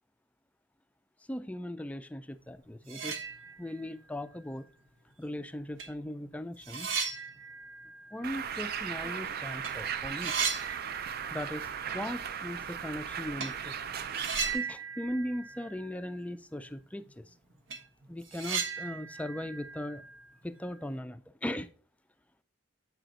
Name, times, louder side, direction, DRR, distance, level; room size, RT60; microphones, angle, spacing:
voice 1, 1.3-3.2 3.6-4.7 5.2-6.9 8.1-10.3 11.3-11.7 11.9-13.7 14.5-17.2 18.1-20.0 20.4-21.7, left 1 dB, 5° left, 0.4 m, -38 dB
sound 1, 2.5-2.6 2.8-3.9 4.2-4.3 5.3-5.4 5.8-9.2 9.5-9.7 10.0-11.6 11.8-11.9 13.4-13.6 14.1-16.3 16.5-16.6 17.1-17.2 17.5-20.7, right 5 dB, 70° right, 1.1 m, -37 dB
Bird, 8.2-14.6, right 8 dB, 50° right, 0.4 m, -37 dB
7.8 x 4.9 x 3.9 m
head